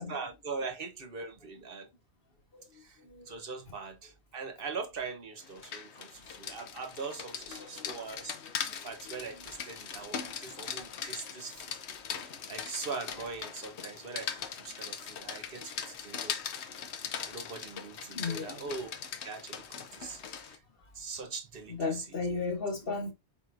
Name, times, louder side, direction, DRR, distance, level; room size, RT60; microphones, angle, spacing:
voice 1, 0.0-1.9 2.8-3.0 3.3-8.3 8.8-11.7 12.5-14.3 14.6-16.4 17.2-18.9 19.2-20.6 20.9-22.0, right 4 dB, 60° right, 1.1 m, -41 dB
voice 2, 3.0-3.4 7.5-8.0 8.4-8.7 9.3-9.5 18.1-18.7 21.7-23.1, left 4 dB, 60° left, 1.4 m, -36 dB
Rain, 5.4-20.6, left 7 dB, 85° left, 1.0 m, -40 dB
4.5 x 4.3 x 2.5 m
omnidirectional pair, 1.1 m